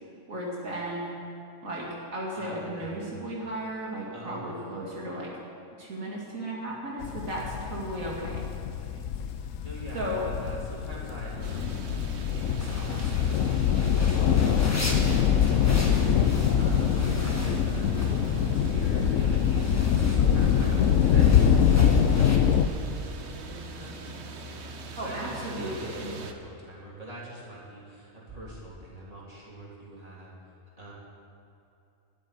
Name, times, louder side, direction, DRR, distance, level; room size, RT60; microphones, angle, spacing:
voice 1, 0.3-1.2 1.6-5.3 5.8-8.5 9.9-10.2 25.0-26.1, right 1 dB, 80° right, -4 dB, 2.7 m, -35 dB
voice 2, 2.3-3.2 4.1-4.9 8.1-9.0 9.3-17.9 18.3-24.3 25.0-30.3 30.8-30.9, right 1 dB, 25° right, -6 dB, 3.6 m, -44 dB
sound 1, 7.0-22.7, left 8 dB, 75° left, 1.0 m, -24 dB
sound 2, 11.4-26.3, right 3 dB, 55° right, 1.2 m, -40 dB
sound 3, 12.6-22.4, left 1 dB, 10° left, 1.6 m, -40 dB
12.5 x 8.8 x 9.7 m, 2.7 s
omnidirectional pair, 1.4 m